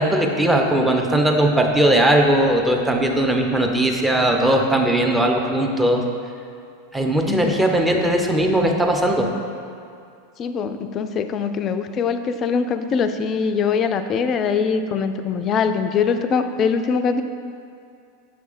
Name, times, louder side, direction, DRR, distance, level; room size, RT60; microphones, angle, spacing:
voice 1, 0.0-6.0 6.9-9.3, right 1 dB, 10° right, 1 dB, 0.7 m, -19 dB
voice 2, 7.3-7.6 10.4-17.2, left 6 dB, 35° left, 9 dB, 0.3 m, -22 dB
6.7 x 3.2 x 5.1 m, 2.4 s
figure-of-eight pair, 90°, 0 cm